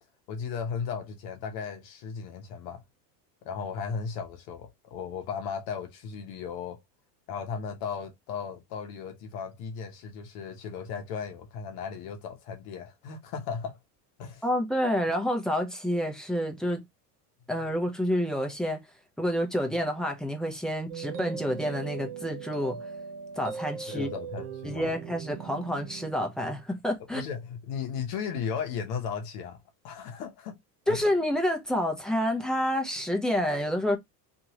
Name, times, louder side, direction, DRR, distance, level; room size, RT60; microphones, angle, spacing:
voice 1, 0.3-2.8 3.4-6.8 7.3-13.8 14.2-14.4 23.9-24.9 27.0-30.6 30.9-31.1, left 6 dB, 55° left, 0.9 m, -36 dB
voice 2, 14.4-16.8 17.5-18.8 19.2-22.8 23.4-24.1 24.6-27.2 30.9-34.0, equal, ahead, 0.6 m, -28 dB
sound 1, 20.9-26.1, right 7 dB, 80° right, 1.0 m, -39 dB
2.9 x 2.6 x 2.7 m
supercardioid pair, 125°, 47 cm